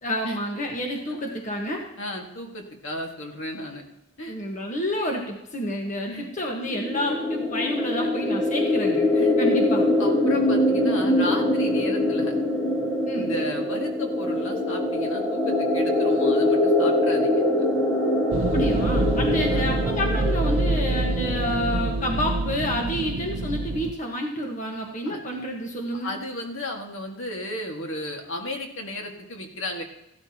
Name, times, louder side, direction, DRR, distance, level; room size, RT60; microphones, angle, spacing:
voice 1, 0.0-1.8 4.3-9.1 9.4-9.9 13.1-13.3 18.5-26.1, equal, 35° left, 0 dB, 1.4 m, -29 dB
voice 2, 2.0-3.8 4.2-4.3 6.1-6.3 7.9-8.1 9.1-9.4 10.0-12.4 13.1-17.4 19.5-19.7 25.1-25.2 26.0-29.8, left 1 dB, 65° left, 2 dB, 1.9 m, -34 dB
sound 1, 6.7-22.3, left 1 dB, 10° left, 1.4 m, -24 dB
sound 2, 18.3-23.9, right 2 dB, 60° right, 0.5 m, -26 dB
15.5 x 12.0 x 2.9 m, 0.85 s
head